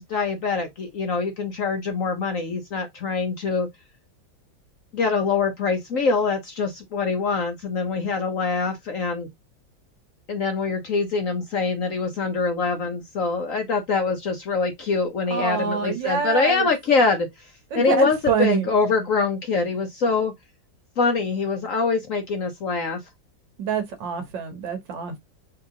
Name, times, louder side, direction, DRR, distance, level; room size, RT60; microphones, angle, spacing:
voice 1, 0.0-3.7 4.9-9.3 10.3-17.3 17.7-20.3 21.0-23.0, left 4 dB, 55° left, 1.0 m, -24 dB
voice 2, 15.3-16.7 17.7-18.7 23.6-25.2, right 6 dB, 70° right, 1.7 m, -26 dB
4.5 x 2.9 x 3.6 m
omnidirectional pair, 2.1 m